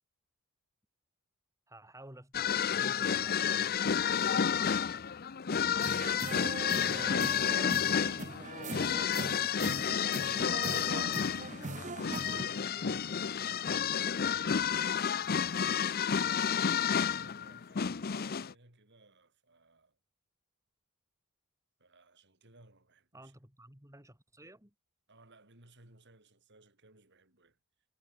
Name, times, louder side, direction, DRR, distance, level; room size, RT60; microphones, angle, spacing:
voice 1, 1.7-3.5 6.7-7.3 7.9-13.7 23.1-24.7, right 1 dB, 15° right, 3.1 m, -54 dB
sound 1, 2.3-18.5, left 7 dB, 45° left, 0.6 m, -31 dB
voice 2, 4.0-4.8 15.2-20.0 21.8-23.3 25.1-27.6, right 2 dB, 50° right, 5.5 m, -61 dB
sound 2, 5.8-12.4, right 3 dB, 35° right, 1.9 m, -41 dB
head